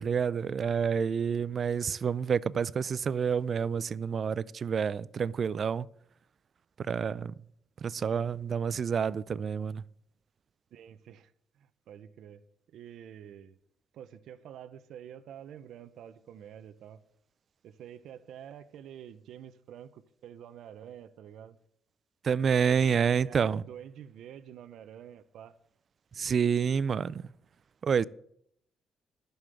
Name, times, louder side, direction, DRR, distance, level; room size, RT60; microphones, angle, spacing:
voice 1, 0.0-5.9 6.8-7.3 7.8-9.8 22.2-23.6 26.2-27.2 27.8-28.0, right 7 dB, 50° right, 0.4 m, -28 dB
voice 2, 10.7-13.6 13.9-17.0 17.6-21.6 22.7-25.6, right 9 dB, 75° right, 0.8 m, -48 dB
11.0 x 7.1 x 7.6 m
cardioid pair, 90°, 0 cm